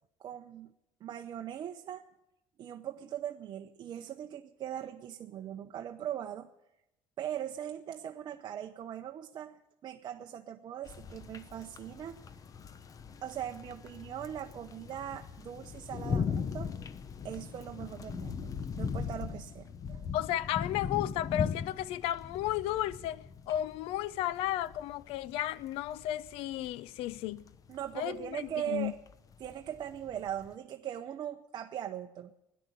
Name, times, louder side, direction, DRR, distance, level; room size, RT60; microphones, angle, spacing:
voice 1, 0.2-0.7 1.0-2.0 2.6-6.5 7.2-12.2 13.2-16.8 17.2-18.5 18.8-20.1 27.7-29.0 29.4-32.3, right 10 dB, 50° right, 0.7 m, -40 dB
sound 1, 10.9-30.5, left 6 dB, 35° left, 0.8 m, -40 dB
voice 2, 20.1-27.5 27.9-28.4 28.7-28.9, left 13 dB, 80° left, 0.6 m, -33 dB
13.5 x 10.5 x 9.6 m
cardioid pair, 110°, 10 cm